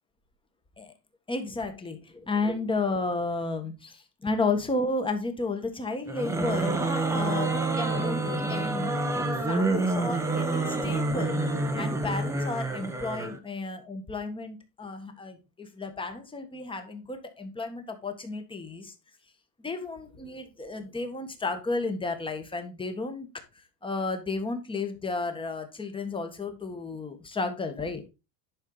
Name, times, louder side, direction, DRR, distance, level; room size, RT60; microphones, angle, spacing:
voice 1, 1.3-6.8 7.1-11.4 11.7-18.9 19.6-23.3 23.8-28.1, left 3 dB, 10° left, 1.5 m, -33 dB
sound 1, 6.1-13.4, right 2 dB, 5° right, 0.9 m, -28 dB
11.0 x 5.6 x 4.0 m
cardioid pair, 150°, 49 cm